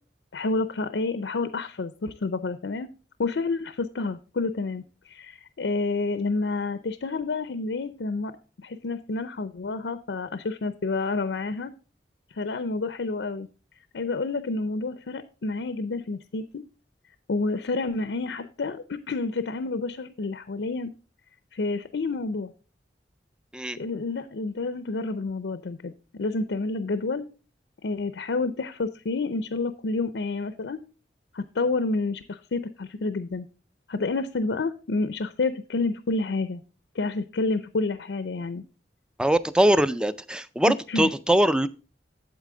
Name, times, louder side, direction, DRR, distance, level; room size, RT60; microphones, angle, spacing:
voice 1, 0.3-2.9 3.2-8.3 8.6-11.7 12.3-13.5 13.9-16.6 17.3-20.9 21.5-22.5 23.8-25.9 26.2-27.3 27.8-30.8 31.3-33.5 33.9-36.6 36.9-38.6 40.9-41.1, left 3 dB, 70° left, 12 dB, 0.5 m, -29 dB
voice 2, 39.2-41.7, right 1 dB, 5° right, 15 dB, 0.3 m, -22 dB
8.2 x 8.1 x 3.8 m, 0.36 s
head